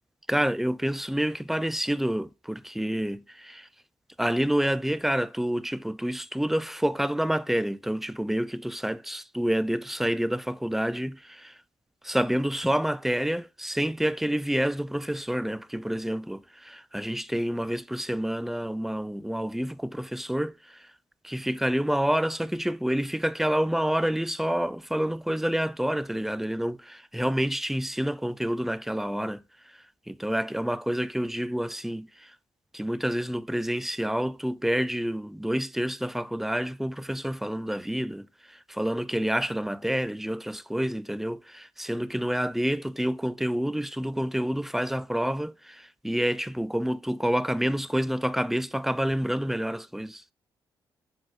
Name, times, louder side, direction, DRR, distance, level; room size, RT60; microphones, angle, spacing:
voice 1, 0.3-3.7 4.2-11.6 12.0-20.9 21.2-32.4 32.7-50.2, equal, 5° right, 0.3 m, -28 dB
6.0 x 3.6 x 5.4 m
supercardioid pair, 55°, 9 cm